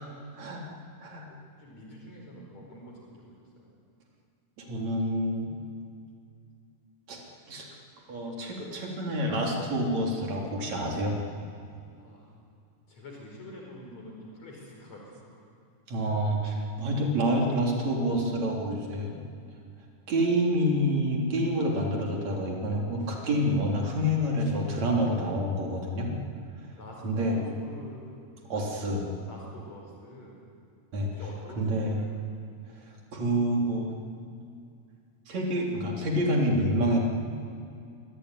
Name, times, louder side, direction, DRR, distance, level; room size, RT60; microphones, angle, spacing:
voice 1, 0.4-0.7 1.0-1.3 4.6-5.5 7.1-7.2 7.5-7.7 8.1-11.2 15.9-19.2 20.1-26.1 27.0-27.4 28.5-29.1 30.9-31.1 31.6-32.0 32.8-32.9 33.1-33.9 35.3-37.0, equal, 60° right, 0 dB, 4.8 m, -27 dB
voice 2, 1.5-3.7 12.0-12.3 12.9-15.3 26.8-28.1 29.3-30.4 31.1-32.1, left 1 dB, 55° left, -1 dB, 5.9 m, -46 dB
25.0 x 24.0 x 9.9 m, 2.4 s
omnidirectional pair, 3.7 m